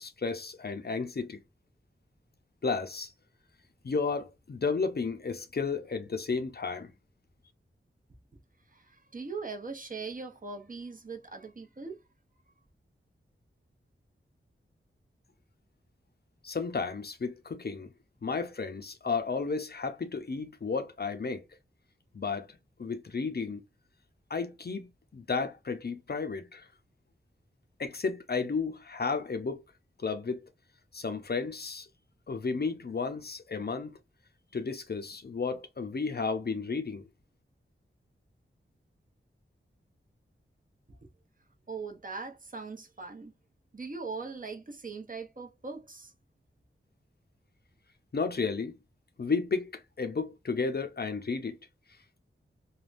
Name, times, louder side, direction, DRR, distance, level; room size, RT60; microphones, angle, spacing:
voice 1, 0.0-1.4 2.6-3.1 3.8-6.9 16.4-17.9 18.2-21.4 22.1-22.5 22.8-23.6 24.3-26.7 27.8-29.6 30.0-30.4 30.9-31.9 32.3-33.9 34.5-37.1 48.1-48.8 49.2-51.6, left 4 dB, 50° left, 0.6 m, -33 dB
voice 2, 8.7-12.0 41.7-43.3 43.7-46.1, right 4 dB, 40° right, 0.8 m, -40 dB
3.4 x 2.2 x 2.5 m
wide cardioid pair, 80°, 21 cm